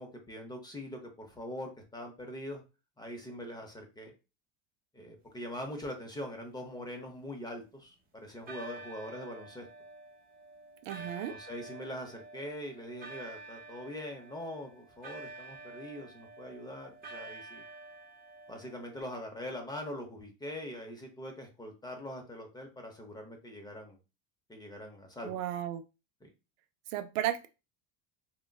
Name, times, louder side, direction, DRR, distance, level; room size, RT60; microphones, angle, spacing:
voice 1, 0.0-2.6 3.0-4.1 4.9-9.7 11.0-17.6 18.5-24.0 24.5-25.4 26.2-26.3, left 1 dB, 10° left, 3 dB, 0.6 m, -43 dB
sound 1, 6.4-7.9 8.5-19.0, right 3 dB, 20° right, 0.7 m, -49 dB
voice 2, 10.8-11.4 25.2-25.8 26.9-27.5, right 12 dB, 75° right, 9 dB, 0.5 m, -34 dB
3.8 x 2.2 x 2.2 m, 0.29 s
supercardioid pair, 125°, 40 cm